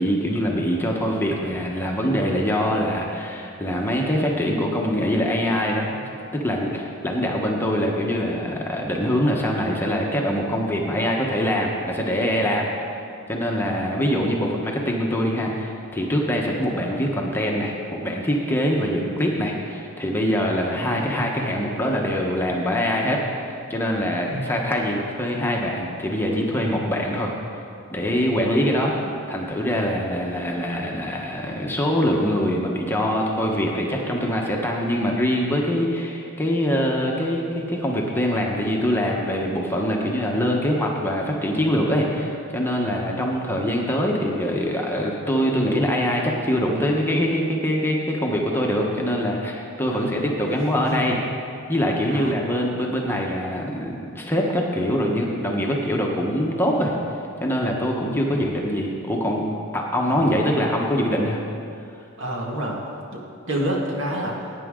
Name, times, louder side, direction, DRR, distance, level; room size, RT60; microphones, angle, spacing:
voice 1, 0.0-5.9 6.3-12.7 13.3-27.3 27.9-51.2 51.7-56.9 57.4-59.4 59.7-61.4, equal, 10° left, -1 dB, 1.1 m, -23 dB
voice 2, 13.6-14.0 20.7-21.0 24.3-24.6 28.8-29.1 49.9-50.3 50.5-51.1 52.1-52.3 60.0-60.4 62.2-62.8 63.1-63.2 63.5-64.5, right 1 dB, 60° right, -1 dB, 1.9 m, -30 dB
17.5 x 9.3 x 3.7 m, 2.5 s
head